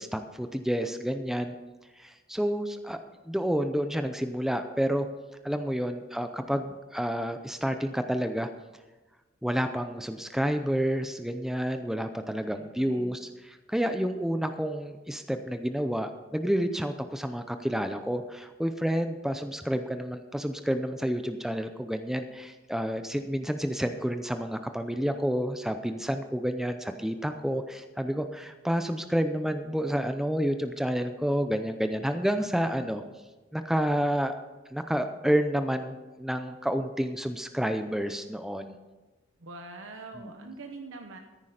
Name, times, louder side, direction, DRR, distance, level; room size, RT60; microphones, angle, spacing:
voice 1, 0.0-1.6 2.0-3.0 3.2-5.1 5.4-8.5 9.4-33.0 33.5-34.3 34.7-38.7 40.2-40.3, equal, ahead, 8 dB, 0.5 m, -29 dB
voice 2, 12.5-13.1 39.4-41.2, right 3 dB, 80° right, 4 dB, 1.0 m, -44 dB
14.0 x 10.0 x 5.0 m, 1.1 s
head